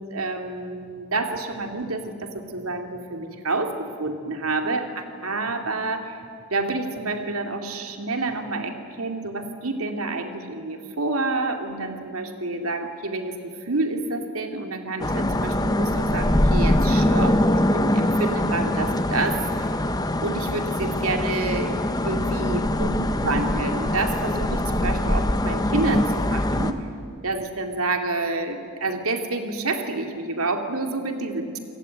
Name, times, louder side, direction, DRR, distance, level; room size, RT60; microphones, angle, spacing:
voice 1, 0.1-6.2 6.5-19.8 20.2-26.9 27.2-31.6, right 3 dB, 85° right, 5 dB, 2.6 m, -28 dB
sound 1, 15.0-26.7, left 1 dB, 15° left, 1.0 m, -23 dB
28.0 x 18.0 x 9.5 m, 2.4 s
head